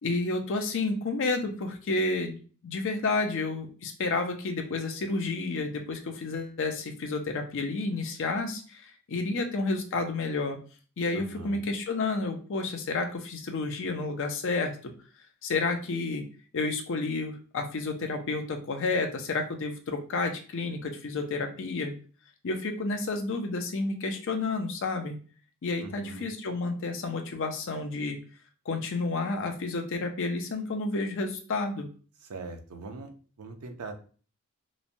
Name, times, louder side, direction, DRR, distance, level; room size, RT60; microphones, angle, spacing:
voice 1, 0.0-10.6 11.0-14.9 15.4-16.2 16.5-21.9 22.4-25.2 25.6-28.2 28.7-31.9, left 3 dB, 60° left, 4 dB, 0.5 m, -30 dB
voice 2, 11.1-11.7 25.8-26.3 32.2-33.1 33.4-33.9, right 3 dB, 85° right, 5 dB, 0.5 m, -41 dB
3.0 x 2.2 x 2.5 m, 0.38 s
head